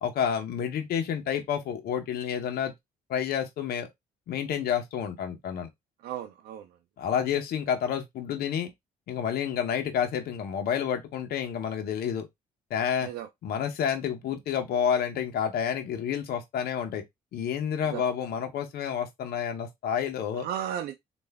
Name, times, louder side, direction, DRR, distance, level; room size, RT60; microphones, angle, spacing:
voice 1, 0.0-2.7 3.1-3.9 4.3-5.7 7.0-8.7 9.1-12.3 12.7-13.1 13.4-17.0 17.3-20.5, left 8 dB, 65° left, 0.9 m, -29 dB
voice 2, 6.0-6.7 13.0-13.3 17.8-18.0 20.4-21.0, right 10 dB, 65° right, 0.5 m, -34 dB
3.4 x 2.5 x 3.3 m
hypercardioid pair, 60°, 17 cm